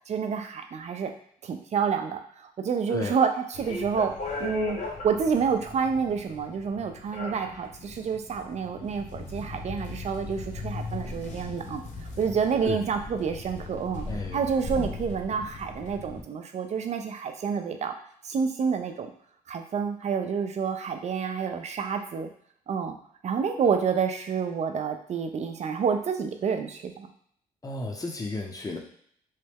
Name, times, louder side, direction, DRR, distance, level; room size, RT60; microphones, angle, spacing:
voice 1, 0.1-1.1 1.4-4.1 4.4-11.8 12.2-14.0 14.3-17.9 18.2-19.1 19.5-22.3 22.7-23.0 23.2-27.1, right 6 dB, 50° right, 6 dB, 0.5 m, -28 dB
sound 1, 3.5-16.2, left 3 dB, 55° left, 0.8 m, -38 dB
voice 2, 14.1-14.4 27.6-28.8, left 3 dB, 25° left, 1 dB, 0.8 m, -33 dB
3.1 x 2.2 x 3.4 m, 0.63 s
supercardioid pair, 60°, 15 cm